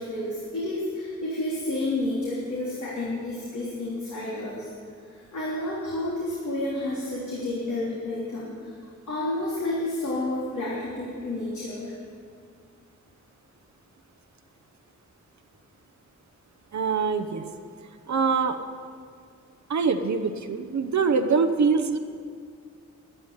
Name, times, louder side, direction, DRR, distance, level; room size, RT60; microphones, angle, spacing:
voice 1, 0.0-4.7 5.1-8.7 9.1-11.9, left 1 dB, 80° left, -6 dB, 3.3 m, -30 dB
voice 2, 16.7-17.4 18.1-18.6 19.7-22.0, right 5 dB, 70° right, 8 dB, 0.9 m, -24 dB
13.0 x 11.5 x 9.7 m, 2.1 s
wide cardioid pair, 120°, 29 cm